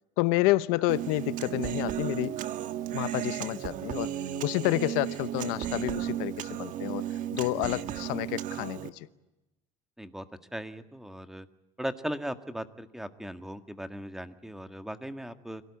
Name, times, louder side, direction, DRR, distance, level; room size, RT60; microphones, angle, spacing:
voice 1, 0.2-2.4 2.9-4.1 4.4-7.0 7.3-9.1, left 19 dB, 85° left, 16 dB, 0.9 m, -29 dB
Human voice, 0.9-8.9, right 10 dB, 65° right, 1.7 m, -34 dB
voice 2, 10.5-11.5 11.8-15.6, equal, 5° right, 9 dB, 1.8 m, -38 dB
26.5 x 18.0 x 9.8 m, 0.99 s
cardioid pair, 105°, 15 cm